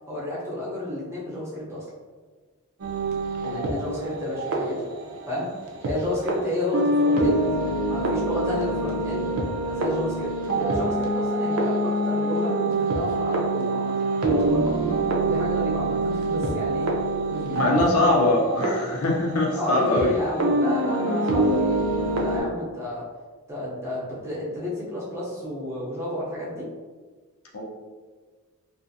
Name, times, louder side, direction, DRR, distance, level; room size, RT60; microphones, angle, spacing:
voice 1, 0.1-1.8 3.4-4.8 5.3-5.5 5.8-7.5 7.9-9.3 9.7-14.0 14.2-14.8 15.2-16.9 17.3-18.0 19.6-21.8 22.1-23.0 23.5-26.7, left 1 dB, 10° right, -6 dB, 0.6 m, -31 dB
sound 1, 2.8-5.9 6.3-6.4 6.7-20.0 20.4-22.4, right 2 dB, 70° right, 0.5 m, -25 dB
voice 2, 17.5-20.2 27.5-27.6, left 1 dB, 90° left, -2 dB, 0.7 m, -22 dB
2.5 x 2.4 x 2.6 m, 1.5 s
head